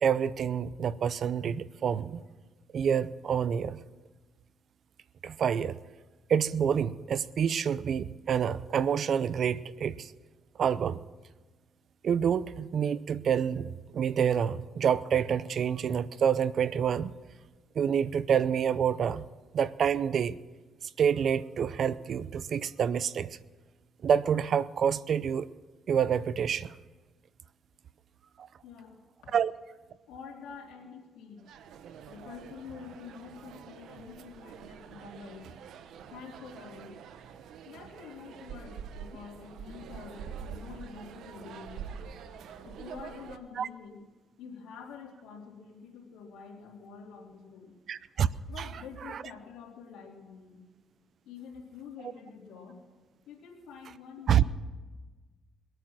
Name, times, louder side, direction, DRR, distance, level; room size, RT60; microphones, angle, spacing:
voice 1, 0.0-2.2 2.7-3.8 5.2-5.8 6.3-10.1 10.6-11.0 12.0-17.1 17.8-19.3 19.5-20.4 21.0-23.4 24.0-25.5 25.9-26.7 28.4-28.5 29.3-29.5 43.6-43.7 47.9-48.3 48.6-48.7 54.3-54.4, right 8 dB, 60° right, 0.5 m, -27 dB
voice 2, 28.6-29.0 30.1-31.5 32.1-35.5 36.1-37.0 37.6-41.9 42.6-44.0 44.4-47.8 48.5-50.6 51.2-52.8 53.3-54.4, left 6 dB, 90° left, 3.2 m, -47 dB
sound 1, 31.4-43.4, right 7 dB, 80° right, 0.9 m, -46 dB
21.5 x 9.0 x 6.1 m
cardioid pair, 90°, 0 cm